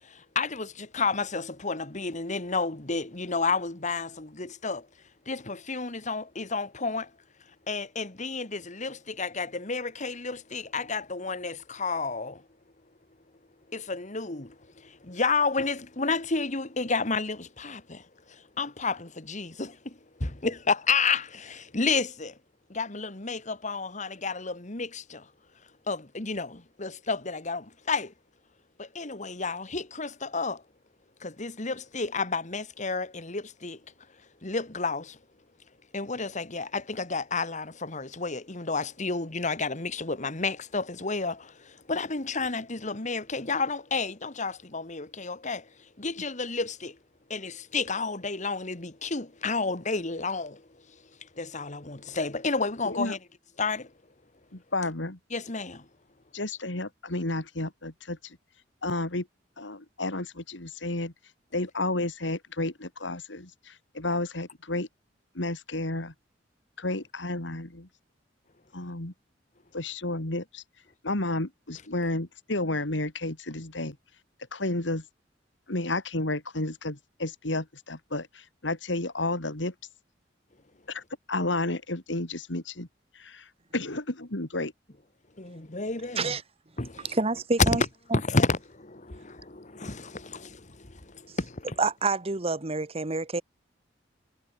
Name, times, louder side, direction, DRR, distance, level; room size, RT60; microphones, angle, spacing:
voice 1, 0.0-4.9 5.3-7.1 7.7-12.5 13.7-22.4 22.7-25.3 25.9-28.1 28.8-30.6 31.2-33.8 34.4-35.2 35.9-47.0 47.3-53.2 53.6-53.9 55.3-55.9 85.4-86.4 86.8-87.2 87.6-87.8 88.1-91.8, left 4 dB, 40° left, 2.1 m, -31 dB
voice 2, 52.8-53.1 54.5-55.2 56.3-58.4 58.8-59.3 59.6-61.1 61.5-64.9 65.3-66.1 66.8-67.9 68.7-69.1 69.7-70.6 71.0-74.0 74.5-75.0 75.7-79.7 80.9-81.0 81.3-82.9 83.1-83.5 83.7-84.7, left 2 dB, 75° left, 3.1 m, -31 dB
voice 3, 87.1-87.8 88.1-88.2 91.8-93.4, right 3 dB, 30° right, 1.3 m, -27 dB
head